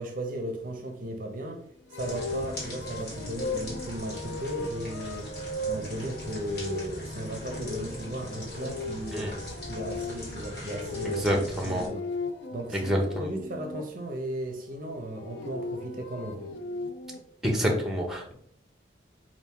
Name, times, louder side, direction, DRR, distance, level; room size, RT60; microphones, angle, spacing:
voice 1, 0.0-1.6 1.9-5.3 5.6-9.4 9.7-12.1 12.5-16.5, right 1 dB, 50° right, 0.5 m, -36 dB
sound 1, 1.9-13.8 15.0-17.2, left 2 dB, 80° left, 0.5 m, -37 dB
sound 2, 2.0-11.9, equal, 55° left, 1.6 m, -40 dB
voice 2, 11.0-11.9 12.7-13.3 17.4-18.3, equal, 5° right, 0.7 m, -27 dB
4.3 x 2.5 x 3.5 m
head